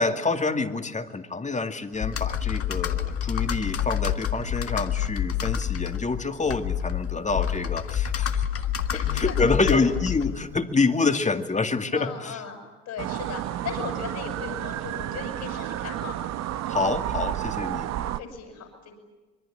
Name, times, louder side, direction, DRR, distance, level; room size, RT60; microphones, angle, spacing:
voice 1, 0.0-8.4 8.9-12.4 16.7-17.9, left 3 dB, 20° left, 7 dB, 2.1 m, -27 dB
Computer keyboard, 2.0-10.6, left 10 dB, 45° left, 1.7 m, -28 dB
voice 2, 8.9-9.3 9.7-9.9 11.9-12.6 12.9-16.6 17.9-18.9, left 6 dB, 60° left, 3 dB, 7.7 m, -37 dB
sound 1, 13.0-18.2, right 13 dB, 55° right, 0.9 m, -31 dB
26.5 x 22.5 x 8.9 m, 1.2 s
hypercardioid pair, 70°, 32 cm